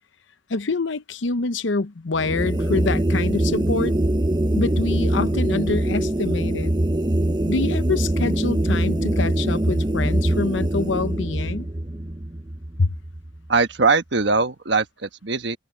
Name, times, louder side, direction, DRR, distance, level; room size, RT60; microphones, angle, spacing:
voice 1, 0.5-3.9 4.5-6.7 7.5-11.7 12.8-12.9, left 3 dB, 75° left, 0.8 m, -25 dB
sound 1, 2.1-13.5, right 1 dB, 20° right, 0.8 m, -23 dB
voice 2, 13.5-15.6, right 4 dB, 65° right, 1.3 m, -21 dB
head